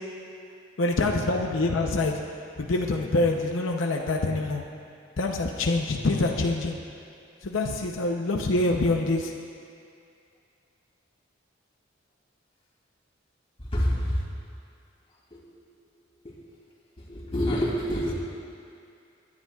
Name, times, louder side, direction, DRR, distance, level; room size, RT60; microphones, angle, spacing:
voice 1, 0.8-2.2 2.6-4.6 5.2-6.8 7.4-9.3, left 2 dB, 90° left, 1 dB, 0.7 m, -25 dB
voice 2, 13.7-14.2 15.3-15.4 17.0-18.1, equal, 30° left, -5 dB, 2.8 m, -26 dB
24.5 x 10.5 x 2.4 m, 2.5 s
head